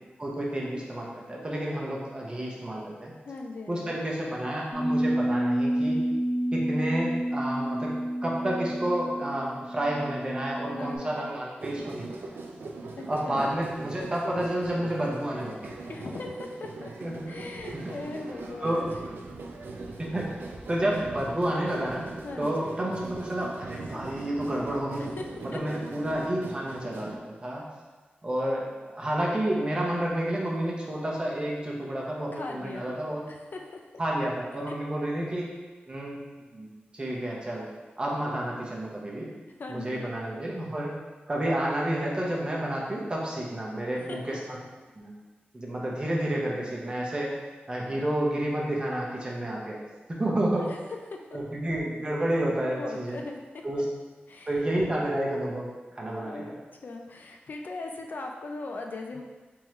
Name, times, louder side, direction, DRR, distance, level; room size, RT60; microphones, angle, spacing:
voice 1, 0.2-3.1 3.7-6.0 6.5-8.0 8.2-12.0 13.1-15.7 17.0-17.2 18.6-18.8 20.1-20.4 20.7-22.1 22.4-25.1 25.5-27.7 28.2-33.3 34.0-35.5 35.9-36.2 36.5-36.7 36.9-37.7 38.0-39.3 39.7-40.9 41.3-44.4 45.0-45.1 45.5-47.3 47.7-49.8 50.1-50.7 51.3-53.2 53.6-53.8 54.5-55.7 55.9-56.6, right 1 dB, 25° right, -3 dB, 0.7 m, -30 dB
voice 2, 3.3-4.0 10.7-11.3 13.0-13.5 15.9-16.9 17.3-19.0 22.2-22.7 25.0-25.2 32.3-32.9 33.3-33.8 34.7-34.8 39.6-40.1 44.1-44.2 50.6-50.8 51.1-51.4 52.8-53.4 54.3-54.5 56.2-56.6 56.8-59.2, left 3 dB, 55° left, 2 dB, 0.4 m, -39 dB
Bass guitar, 4.7-11.0, right 1 dB, 20° left, 0.9 m, -29 dB
sound 1, 11.6-27.2, right 3 dB, 80° right, 0.4 m, -41 dB
3.5 x 3.0 x 3.1 m, 1.3 s
wide cardioid pair, 120°, 4 cm